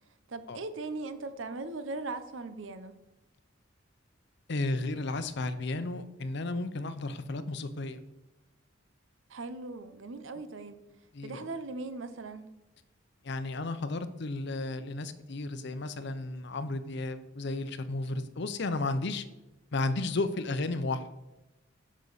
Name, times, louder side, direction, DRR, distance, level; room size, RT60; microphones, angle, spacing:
voice 1, 0.3-3.0 9.3-10.8 11.2-12.5, right 3 dB, 80° right, 11 dB, 0.7 m, -39 dB
voice 2, 4.5-8.0 11.1-11.5 13.2-19.2 19.7-21.1, left 2 dB, 60° left, 11 dB, 0.7 m, -33 dB
10.5 x 6.3 x 4.1 m, 1.0 s
head